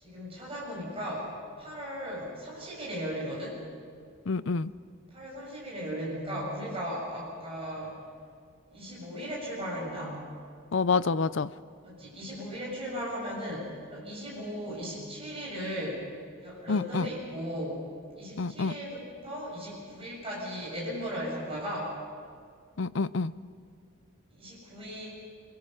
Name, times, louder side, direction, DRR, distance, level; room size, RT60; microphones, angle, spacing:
voice 1, 0.0-3.6 5.1-7.9 8.7-10.2 11.8-16.0 16.4-17.8 18.1-21.9 24.3-25.1, equal, 25° right, -5 dB, 6.9 m, -37 dB
voice 2, 4.3-4.7 10.7-11.5 16.7-17.1 18.4-18.8 22.8-23.3, left 4 dB, 60° left, 16 dB, 0.5 m, -27 dB
25.5 x 23.0 x 6.7 m, 2.1 s
head